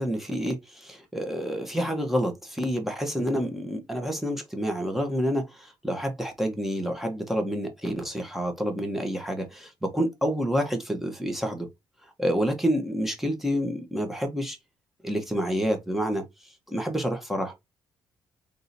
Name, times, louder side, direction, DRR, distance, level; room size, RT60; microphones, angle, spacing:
voice 1, 0.0-11.7 12.2-14.6 15.0-16.2 16.7-17.6, equal, 5° right, 1.2 m, -28 dB
3.9 x 3.7 x 2.7 m
cardioid pair, 140°, 8 cm